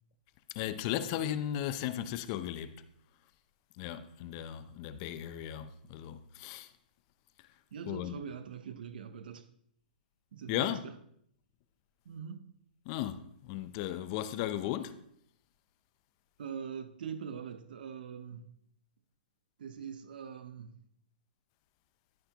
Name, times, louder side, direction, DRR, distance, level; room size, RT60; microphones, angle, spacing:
voice 1, 0.5-2.8 3.8-6.7 7.9-8.2 10.5-10.9 12.9-15.0, left 11 dB, 35° left, 0.6 m, -36 dB
voice 2, 7.7-9.5 10.3-10.9 12.0-12.5 16.4-18.5 19.6-20.8, right 7 dB, 70° right, 0.7 m, -43 dB
14.0 x 5.7 x 3.0 m
hypercardioid pair, 145°, 5 cm